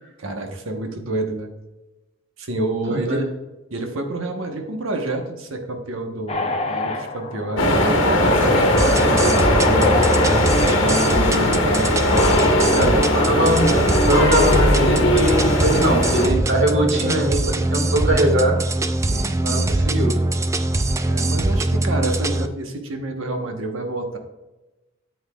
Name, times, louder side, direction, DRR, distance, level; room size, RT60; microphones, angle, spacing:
voice 1, 0.2-1.5 2.4-3.2 3.7-10.0 10.6-11.7 12.5-13.1 19.1-19.4 21.0-24.2, right 2 dB, 80° right, 4 dB, 1.1 m, -28 dB
voice 2, 2.9-3.2 11.2-11.6 12.7-13.6 14.1-17.4 17.7-18.5 19.4-20.2, right 1 dB, 60° right, 2 dB, 1.7 m, -21 dB
sound 1, 6.3-11.8, left 3 dB, 30° left, 0.6 m, -27 dB
sound 2, 7.6-16.3, left 1 dB, 65° left, 1.2 m, -18 dB
sound 3, 8.8-22.5, right 2 dB, 15° right, 0.3 m, -23 dB
8.6 x 8.0 x 2.3 m, 1.0 s
head